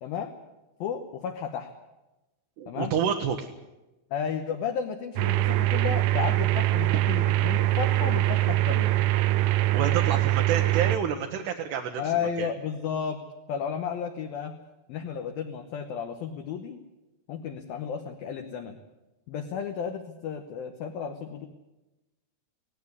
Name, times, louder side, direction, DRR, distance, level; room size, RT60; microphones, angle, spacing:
voice 1, 0.0-0.3 0.8-1.7 2.7-2.9 4.1-9.0 12.0-13.2 13.5-14.5 14.9-16.8 17.3-18.8 19.3-21.5, left 7 dB, 75° left, 5 dB, 2.2 m, -33 dB
voice 2, 2.6-3.5 9.7-12.0 12.4-12.5, right 7 dB, 70° right, 3 dB, 2.8 m, -28 dB
sound 1, 5.2-11.0, right 16 dB, 85° right, 3.5 m, -23 dB
17.5 x 17.0 x 9.7 m, 1.0 s
omnidirectional pair, 5.8 m